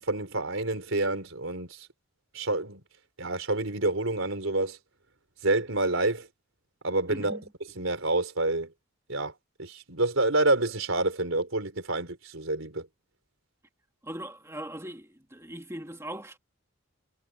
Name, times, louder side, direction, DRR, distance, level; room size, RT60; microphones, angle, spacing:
voice 1, 0.0-1.9 2.3-2.8 3.2-4.8 5.4-6.3 6.8-7.4 7.8-8.7 9.1-9.3 9.6-12.9, right 2 dB, 70° right, 4.3 m, -28 dB
voice 2, 7.1-7.4 14.0-16.4, right 1 dB, 15° right, 2.4 m, -40 dB
head